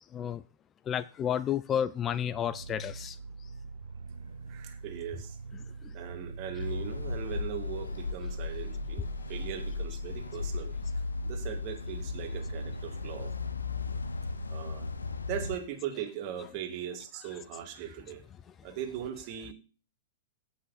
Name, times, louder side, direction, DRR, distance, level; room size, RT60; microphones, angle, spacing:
voice 1, 0.1-0.4 0.9-3.2 5.5-5.9 6.6-6.7 9.0-9.1 16.4-16.5 17.2-17.4, left 9 dB, 25° left, 0.5 m, -32 dB
Growling, 2.2-7.1, right 4 dB, 85° right, 1.0 m, -44 dB
voice 2, 4.5-5.4 5.9-13.3 14.5-14.9 15.3-18.2 18.6-19.5, right 10 dB, 45° right, 2.3 m, -39 dB
sound 1, 6.6-15.6, left 3 dB, 90° left, 1.0 m, -35 dB
16.5 x 5.7 x 4.1 m
hypercardioid pair, 110°, 0 cm